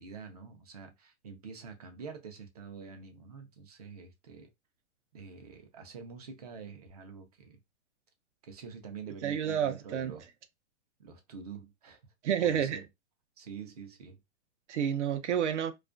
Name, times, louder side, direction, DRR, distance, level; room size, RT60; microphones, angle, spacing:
voice 1, 0.0-4.5 5.1-7.6 8.4-10.3 11.0-12.0 12.4-12.9 13.4-14.2, right 5 dB, 35° right, 0.4 m, -46 dB
voice 2, 9.2-10.1 12.2-12.8 14.7-15.7, right 9 dB, 75° right, 0.6 m, -29 dB
2.4 x 2.2 x 2.4 m
hypercardioid pair, 165°, 36 cm